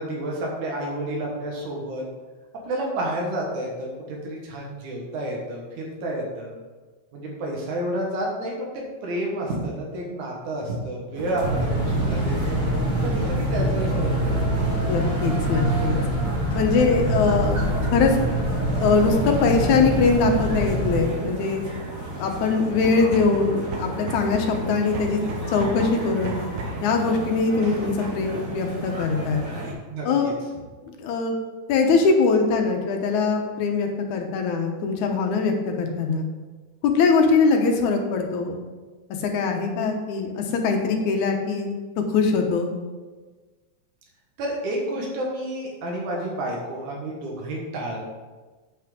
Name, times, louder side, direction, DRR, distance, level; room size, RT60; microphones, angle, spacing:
voice 1, 0.0-2.0 2.7-6.5 7.1-12.6 13.0-14.6 29.9-30.3 44.4-48.0, right 1 dB, 85° right, -2 dB, 2.9 m, -30 dB
sound 1, 11.1-29.7, right 2 dB, 30° right, 1.9 m, -34 dB
sound 2, 11.4-21.0, right 1 dB, 15° left, 2.1 m, -24 dB
voice 2, 14.9-16.0 16.5-17.6 17.9-18.2 18.8-21.6 22.2-25.2 25.5-26.4 26.8-29.4 30.0-30.3 30.9-31.3 31.7-36.3 36.8-38.6 39.2-41.7 42.1-42.7, left 4 dB, 85° left, 3 dB, 2.5 m, -22 dB
sound 3, 22.7-26.9, right 2 dB, 60° right, 1.9 m, -34 dB
8.6 x 6.0 x 5.1 m, 1.3 s
omnidirectional pair, 3.3 m